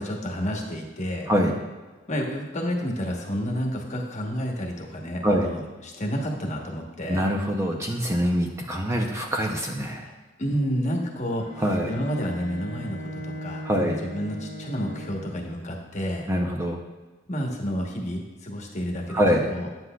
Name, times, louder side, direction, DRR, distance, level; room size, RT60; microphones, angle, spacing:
voice 1, 0.0-1.3 2.1-7.2 10.4-11.4 11.8-16.3 17.3-19.2 19.5-19.7, equal, 35° left, 0 dB, 1.1 m, -30 dB
voice 2, 1.3-1.6 5.2-5.5 7.1-10.1 11.6-11.9 13.6-14.0 16.3-16.8 19.1-19.5, equal, 15° right, 1 dB, 0.6 m, -24 dB
Bowed string instrument, 11.4-15.5, equal, 80° right, 2.2 m, -38 dB
9.3 x 7.8 x 2.3 m, 1.3 s
head